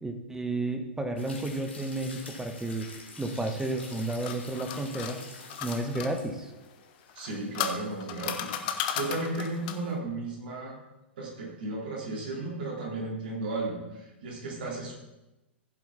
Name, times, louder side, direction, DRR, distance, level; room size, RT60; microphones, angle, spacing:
voice 1, 0.0-2.9 3.2-5.2 5.6-6.5, right 2 dB, 10° right, 6 dB, 1.3 m, -32 dB
sound 1, 1.2-7.4 7.8-7.9, left 3 dB, 75° left, 2.4 m, -47 dB
sound 2, 3.8-6.1 7.1-9.9, left 9 dB, 45° left, 1.1 m, -35 dB
voice 2, 7.2-10.8 11.2-14.9, right 2 dB, 55° right, -2 dB, 3.9 m, -34 dB
15.0 x 7.5 x 4.1 m, 0.99 s
figure-of-eight pair, 100°, 6 cm